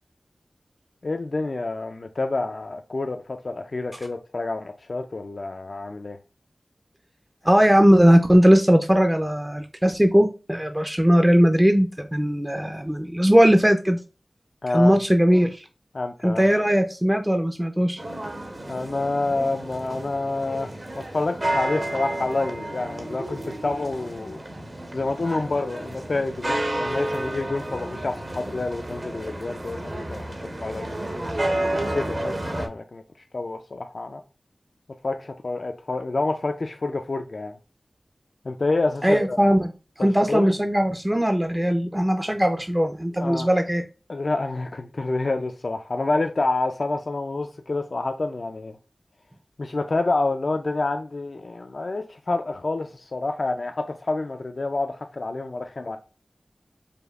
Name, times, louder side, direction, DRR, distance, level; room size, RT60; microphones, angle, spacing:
voice 1, 1.0-6.2 14.6-15.0 15.9-16.5 18.7-24.4 24.9-30.3 30.6-30.9 31.9-33.0 33.3-34.2 35.0-37.6 38.4-39.4 40.0-40.5 43.2-43.5 44.1-48.8 49.6-56.0, left 2 dB, 65° left, 0.3 m, -28 dB
voice 2, 7.4-14.0 14.7-15.6 16.2-18.0 39.0-39.7 40.0-43.8, equal, 15° right, 0.4 m, -19 dB
sound 1, 18.0-32.7, right 1 dB, 50° right, 0.9 m, -31 dB
5.0 x 2.3 x 2.3 m
cardioid pair, 40°, 0 cm